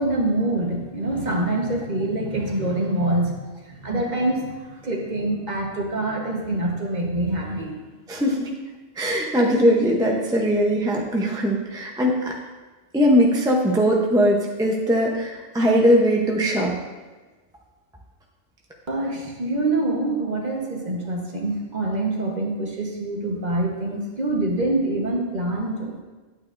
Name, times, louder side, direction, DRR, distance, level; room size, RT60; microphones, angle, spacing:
voice 1, 0.0-7.8 18.9-26.0, right 2 dB, 40° right, -1 dB, 1.2 m, -25 dB
voice 2, 8.1-8.5 9.0-12.4 12.9-16.8, equal, 5° right, -1 dB, 0.6 m, -20 dB
9.3 x 8.8 x 2.6 m, 1.2 s
omnidirectional pair, 1.3 m